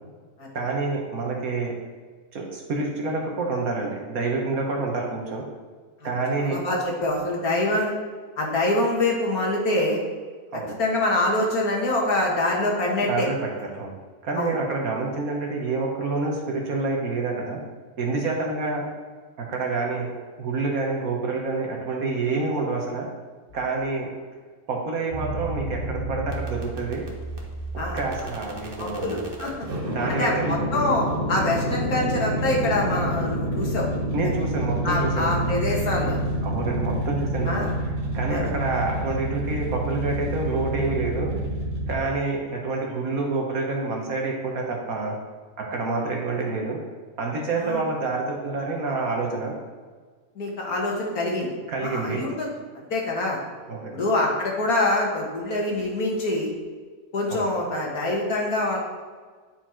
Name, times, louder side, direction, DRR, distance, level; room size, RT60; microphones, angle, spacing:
voice 1, 0.5-1.7 2.3-5.4 6.0-6.6 10.5-10.7 13.1-13.9 14.2-17.6 18.0-18.9 19.4-20.1 20.4-23.1 23.5-24.1 24.7-27.0 27.9-29.2 29.9-30.6 34.1-35.3 36.4-41.3 41.9-45.2 45.6-46.8 47.2-49.6 51.7-52.2 53.7-54.0 57.3-57.4, right 3 dB, 60° right, 0 dB, 1.6 m, -27 dB
voice 2, 6.4-7.9 8.4-10.0 10.8-13.3 14.4-14.6 27.8-28.0 28.8-29.5 30.2-33.9 34.8-36.2 37.5-37.7 38.3-38.4 47.6-47.9 50.4-51.5 51.8-52.5 52.7-53.4 53.9-56.5 57.1-58.8, left 2 dB, 60° left, -1 dB, 2.0 m, -25 dB
sound 1, 25.1-42.0, right 1 dB, 35° right, 1.2 m, -29 dB
9.8 x 4.5 x 4.5 m, 1.5 s
omnidirectional pair, 1.8 m